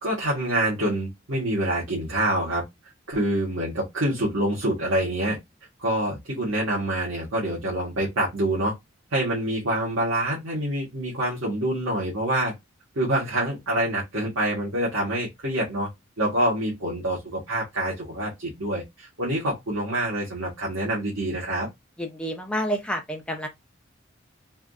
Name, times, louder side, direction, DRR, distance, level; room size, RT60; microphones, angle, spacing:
voice 1, 0.0-2.6 3.1-5.4 5.8-8.7 9.1-12.5 12.9-15.9 16.2-21.7, right 1 dB, 85° right, 1.2 m, -26 dB
voice 2, 22.0-23.5, equal, 5° left, 0.5 m, -29 dB
3.4 x 2.5 x 2.3 m
head